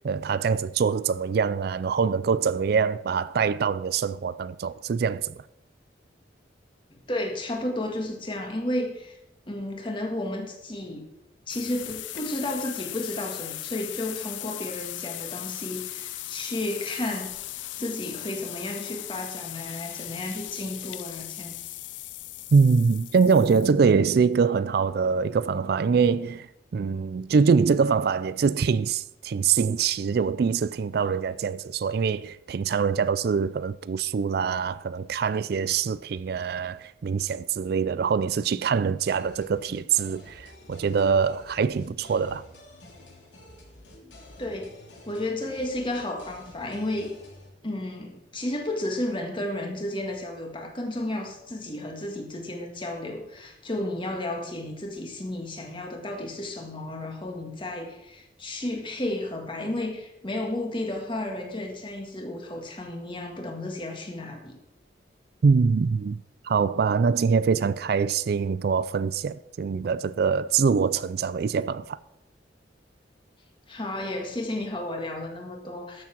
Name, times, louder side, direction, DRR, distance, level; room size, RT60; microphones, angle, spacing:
voice 1, 0.0-5.4 22.5-26.5 26.7-42.4 65.4-72.0, right 5 dB, 55° right, 0.3 m, -24 dB
voice 2, 6.9-9.2 9.5-11.1 11.5-17.3 17.8-21.6 44.4-44.7 45.1-47.2 47.6-64.6 73.7-76.0, left 1 dB, 25° left, 1.9 m, -32 dB
sound 1, 11.5-23.7, left 15 dB, 90° left, 0.5 m, -38 dB
sound 2, 39.2-47.5, left 1 dB, 70° left, 3.3 m, -50 dB
13.0 x 7.2 x 6.0 m
head